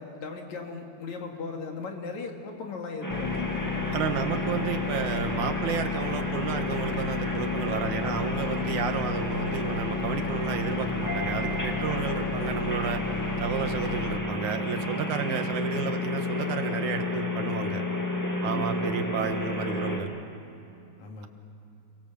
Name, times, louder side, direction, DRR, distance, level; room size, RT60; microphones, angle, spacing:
voice 1, 0.0-3.6 15.2-15.4 18.4-19.0 21.0-21.3, left 4 dB, 75° left, 2 dB, 3.7 m, -37 dB
sound 1, 3.0-20.0, left 2 dB, 5° left, 2.0 m, -31 dB
sound 2, 3.1-14.2, left 9 dB, 90° left, 2.2 m, -36 dB
voice 2, 3.9-13.0 13.4-17.8 18.4-20.1, right 7 dB, 90° right, 7 dB, 2.8 m, -32 dB
29.5 x 23.5 x 7.6 m, 2.7 s
omnidirectional pair, 3.3 m